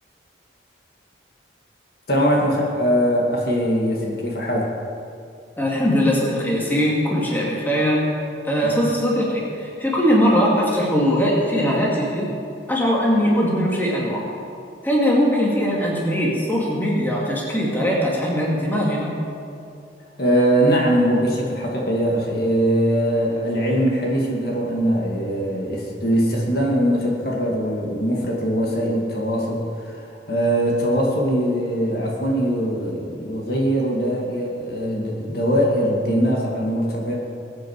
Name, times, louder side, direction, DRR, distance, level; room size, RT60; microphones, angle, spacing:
voice 1, 2.1-4.7 8.6-8.7 20.2-37.2, equal, 55° left, -2 dB, 2.1 m, -21 dB
voice 2, 5.6-8.1 8.4-12.3 12.7-14.2 14.8-19.1, equal, 10° left, -4 dB, 2.4 m, -20 dB
21.5 x 9.1 x 4.8 m, 2.5 s
head